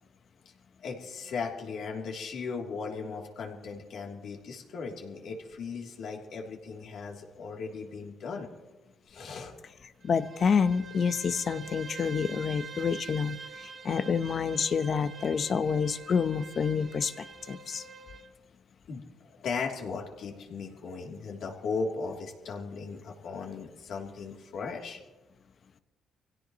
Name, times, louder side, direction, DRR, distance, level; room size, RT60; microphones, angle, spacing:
voice 1, 0.8-8.5 9.1-9.5 18.9-19.0 19.3-25.0, left 4 dB, 70° left, 0 dB, 3.2 m, -37 dB
voice 2, 10.0-17.8, left 6 dB, 50° left, 12 dB, 0.9 m, -28 dB
Bowed string instrument, 10.0-18.3, right 4 dB, 45° right, 1.1 m, -45 dB
25.0 x 16.5 x 3.1 m, 1.1 s
cardioid pair, 90°, 0 cm